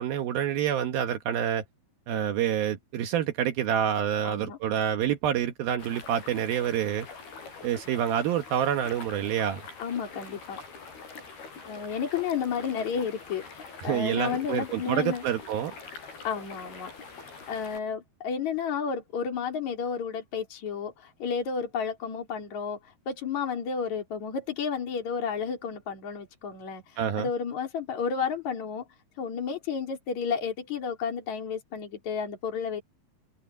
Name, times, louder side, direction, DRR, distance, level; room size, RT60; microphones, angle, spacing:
voice 1, 0.0-1.6 2.1-7.1 7.6-9.6 13.8-15.7 27.0-27.3, right 10 dB, 75° right, 3.0 m, -27 dB
voice 2, 4.2-4.6 9.8-10.6 11.7-15.2 16.2-16.9 17.5-28.9 29.2-32.8, left 6 dB, 50° left, 5.0 m, -32 dB
sound 1, 5.8-17.8, left 4 dB, 85° left, 7.9 m, -45 dB
omnidirectional pair, 4.4 m